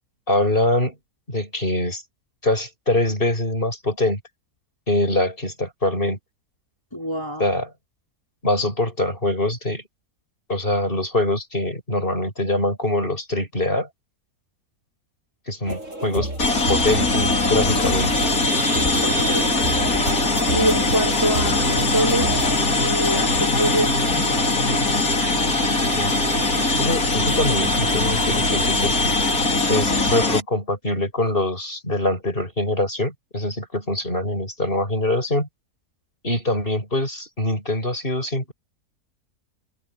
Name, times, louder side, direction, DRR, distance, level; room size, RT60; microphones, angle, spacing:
voice 1, 0.3-0.9 1.3-2.0 2.4-4.2 4.9-6.2 7.4-7.7 8.4-9.8 10.5-13.9 15.5-16.3 16.7-18.1 25.9-26.2 26.7-29.2 29.7-35.5 36.2-38.5, left 1 dB, 35° left, 8.3 m, -23 dB
voice 2, 6.9-7.5 19.0-19.6 20.5-22.4 22.8-24.0, right 1 dB, 15° left, 4.3 m, -25 dB
sound 1, 15.6-22.6, right 1 dB, 50° right, 8.4 m, -30 dB
sound 2, 16.4-30.4, left 2 dB, 65° left, 4.4 m, -21 dB
sound 3, 21.4-25.0, left 2 dB, 90° left, 4.6 m, -31 dB
omnidirectional pair, 1.7 m